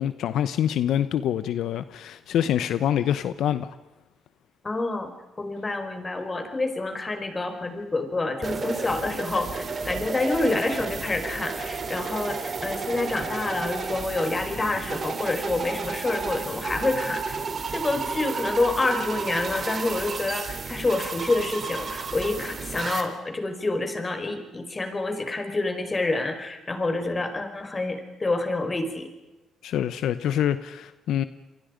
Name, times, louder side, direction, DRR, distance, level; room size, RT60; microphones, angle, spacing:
voice 1, 0.0-3.7 29.6-31.2, left 10 dB, 80° left, 13 dB, 0.9 m, -25 dB
voice 2, 4.6-5.1 5.4-17.4 17.7-29.1, left 2 dB, 25° left, 6 dB, 5.1 m, -28 dB
sound 1, 8.4-23.0, right 4 dB, 40° right, 3.6 m, -32 dB
29.0 x 23.5 x 5.2 m, 1.1 s
cardioid pair, 90°, 0 cm